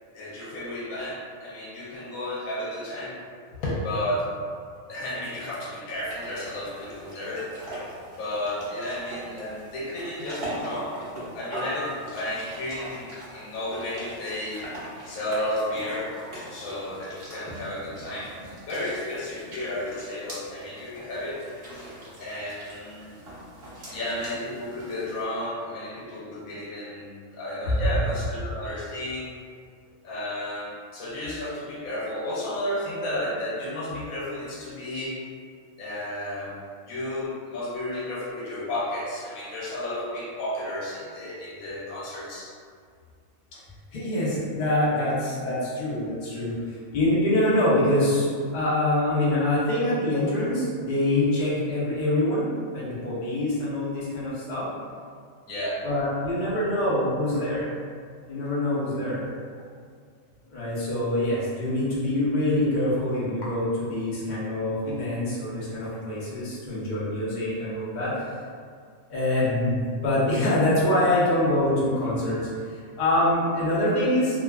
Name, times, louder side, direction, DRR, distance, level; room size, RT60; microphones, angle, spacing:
voice 1, 0.1-3.2 3.6-4.3 4.9-7.5 8.1-14.6 15.1-18.3 18.7-21.4 22.2-23.2 23.8-29.3 30.0-35.2 35.8-36.6 36.9-42.5 55.4-55.9, left 1 dB, 85° left, -5 dB, 1.1 m, -32 dB
sound 1, 5.9-25.2, right 1 dB, 50° right, 0.9 m, -41 dB
voice 2, 43.9-52.5 52.7-54.7 55.8-57.7 58.3-59.3 60.5-68.1 69.1-72.4 72.7-74.4, left 1 dB, 45° left, -8 dB, 0.6 m, -25 dB
2.5 x 2.3 x 2.2 m, 2.1 s
omnidirectional pair, 1.4 m